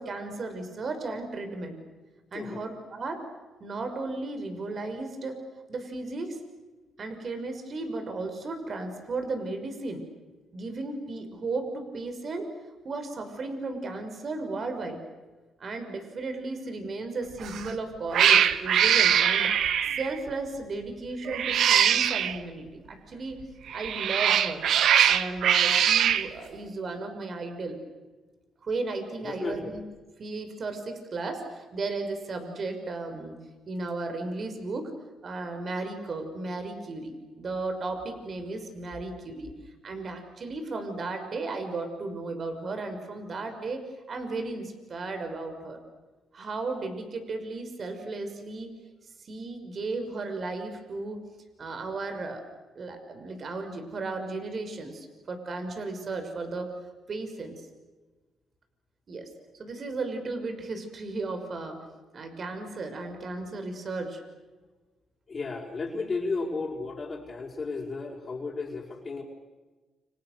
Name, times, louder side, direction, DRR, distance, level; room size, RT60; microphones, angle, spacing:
voice 1, 0.0-1.8 2.3-3.2 3.6-5.4 5.7-6.4 7.0-10.0 10.5-12.5 12.8-15.0 15.6-19.5 20.0-23.4 23.7-24.6 25.1-27.8 28.6-29.8 30.2-33.4 33.7-34.9 35.2-39.5 39.8-45.8 46.3-48.7 49.2-51.2 51.6-52.4 52.7-56.7 57.1-57.6 59.1-59.3 59.6-61.8 62.1-64.2, right 3 dB, 45° right, 6 dB, 6.0 m, -35 dB
voice 2, 2.3-2.6 29.2-29.7 65.3-69.2, left 3 dB, 35° left, -3 dB, 5.4 m, -33 dB
Cat, 17.4-17.7 18.1-20.1 21.3-22.3 23.7-26.3, right 9 dB, 70° right, 1.4 m, -22 dB
29.5 x 28.0 x 6.8 m, 1.2 s
cardioid pair, 90°, 0 cm